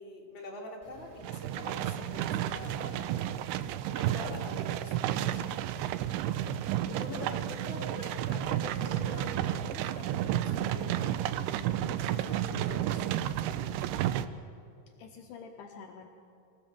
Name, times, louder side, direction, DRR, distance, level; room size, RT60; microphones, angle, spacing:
voice 1, 0.0-3.2 3.9-5.4 6.8-11.3 12.0-13.5, left 1 dB, 30° left, -1 dB, 2.8 m, -45 dB
sound 1, 0.8-13.9, equal, 30° right, 0.6 m, -54 dB
sound 2, 1.2-14.3, right 12 dB, 80° right, 2.4 m, -32 dB
voice 2, 15.0-16.1, left 6 dB, 80° left, 3 dB, 1.9 m, -47 dB
24.5 x 16.0 x 7.3 m, 2.4 s
omnidirectional pair, 5.1 m